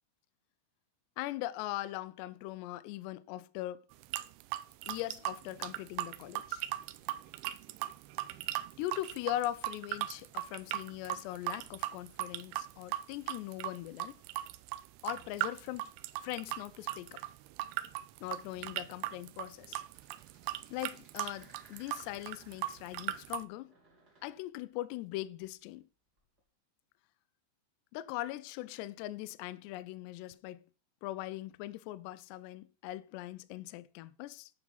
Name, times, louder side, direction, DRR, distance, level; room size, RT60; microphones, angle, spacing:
voice 1, 1.2-3.8 4.9-6.6 8.8-14.2 15.0-15.9 16.2-17.2 18.2-19.8 20.7-23.7 24.2-25.9 27.9-30.6 31.0-34.5, left 15 dB, 80° left, 2.5 m, -40 dB
sound 1, 3.9-23.4, right 15 dB, 85° right, 3.1 m, -38 dB
sound 2, 19.9-23.3 23.6-24.4 26.2-26.4, right 1 dB, 25° right, 2.4 m, -63 dB
11.0 x 6.0 x 5.5 m
omnidirectional pair, 5.4 m